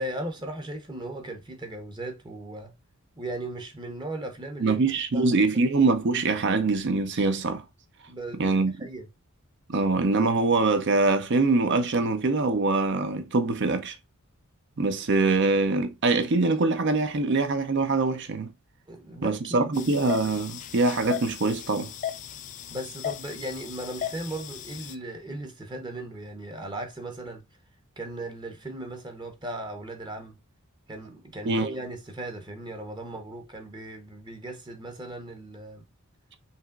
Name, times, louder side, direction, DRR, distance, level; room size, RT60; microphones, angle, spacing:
voice 1, 0.0-2.7 3.2-4.8 5.1-5.7 8.1-9.1 18.9-19.8 22.7-27.4 28.0-30.4 30.9-35.9, right 1 dB, 20° right, 0.8 m, -37 dB
voice 2, 4.6-7.6 8.4-8.9 9.7-13.9 14.8-18.5 19.2-21.9 31.5-31.7, right 3 dB, 55° right, 0.6 m, -24 dB
sound 1, 19.7-24.9, left 10 dB, 35° left, 0.3 m, -37 dB
5.4 x 3.0 x 2.3 m
head